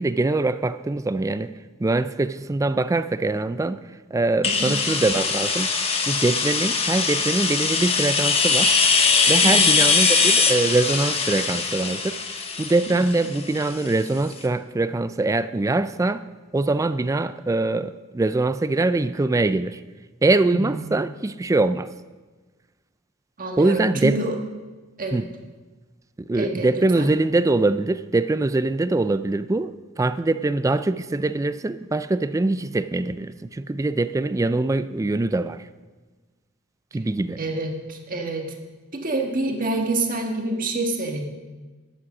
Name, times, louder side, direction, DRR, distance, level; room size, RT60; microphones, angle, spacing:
voice 1, 0.0-1.5 1.8-3.8 4.1-5.7 6.0-8.7 9.3-12.2 12.6-16.2 16.5-19.8 20.2-21.9 23.6-24.2 25.1-25.3 26.3-35.7 36.9-37.4, right 2 dB, 15° right, 0.3 m, -23 dB
sound 1, 4.4-14.1, left 4 dB, 30° left, 1.1 m, -21 dB
voice 2, 4.5-4.8 9.4-9.8 12.9-13.2 20.4-20.9 23.4-24.4 25.0-25.2 26.3-26.7 26.9-27.1 37.4-38.5 38.9-41.3, right 2 dB, 40° right, 1.6 m, -27 dB
12.5 x 8.6 x 6.1 m
head